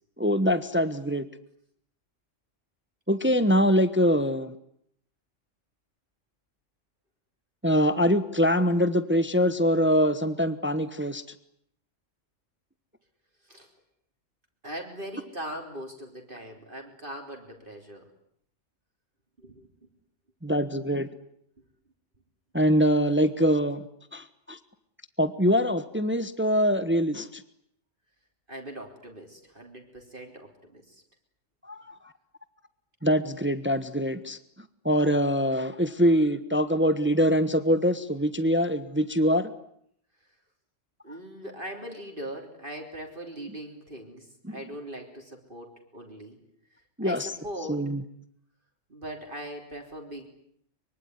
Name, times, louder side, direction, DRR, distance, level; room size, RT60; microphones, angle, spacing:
voice 1, 0.2-1.2 3.1-4.5 7.6-11.2 20.4-21.1 22.5-23.8 24.1-24.6 25.2-27.4 31.7-31.9 33.0-34.4 34.8-39.5 44.4-44.6 47.0-47.3 47.7-48.0, equal, 10° right, 12 dB, 1.1 m, -24 dB
voice 2, 14.6-18.1 19.4-19.6 28.5-31.0 41.0-46.4 47.0-47.8 48.9-50.3, right 1 dB, 45° right, 2 dB, 3.6 m, -40 dB
24.5 x 24.0 x 9.6 m, 0.69 s
omnidirectional pair, 1.3 m